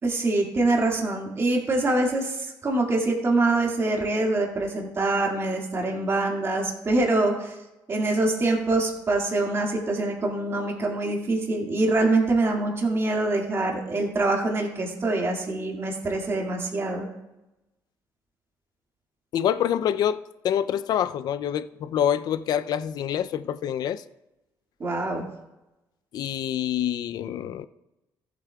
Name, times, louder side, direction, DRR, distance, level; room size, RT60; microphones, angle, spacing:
voice 1, 0.0-7.5 7.9-17.1 24.8-25.3, right 2 dB, 35° right, 2.0 m, -25 dB
voice 2, 19.3-24.0 26.1-27.6, left 10 dB, 65° left, 0.4 m, -26 dB
14.5 x 8.2 x 2.3 m
cardioid pair, 100°, 7 cm